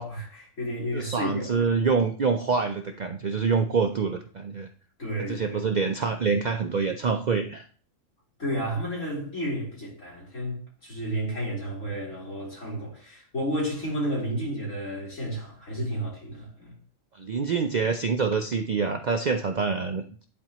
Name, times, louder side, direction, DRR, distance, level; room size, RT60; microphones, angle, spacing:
voice 1, 0.0-1.7 5.0-5.6 8.4-16.7, equal, 70° left, 3.4 m, -32 dB
voice 2, 0.9-4.7 5.2-7.6 17.1-20.3, right 5 dB, 65° right, 0.4 m, -26 dB
10.5 x 4.3 x 3.0 m
omnidirectional pair, 1.4 m